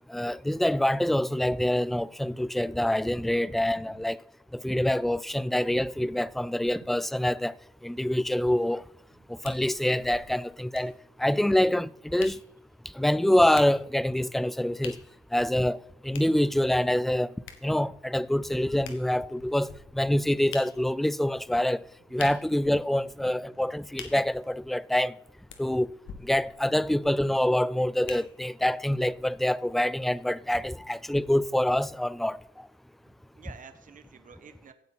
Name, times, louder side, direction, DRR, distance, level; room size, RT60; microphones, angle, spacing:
voice 1, 0.1-4.2 4.5-7.5 7.8-8.8 9.3-12.4 13.0-15.0 15.3-17.3 17.6-21.8 22.1-25.1 25.6-25.9 26.2-32.4, left 1 dB, ahead, 0.3 m, -26 dB
voice 2, 3.5-4.0 6.8-6.9 9.2-9.3 23.2-23.6 33.0-34.7, right 6 dB, 40° right, 1.1 m, -51 dB
sound 1, 9.4-28.7 29.3-29.4, left 7 dB, 80° left, 1.7 m, -49 dB
15.5 x 8.1 x 4.2 m
cardioid pair, 90°, 20 cm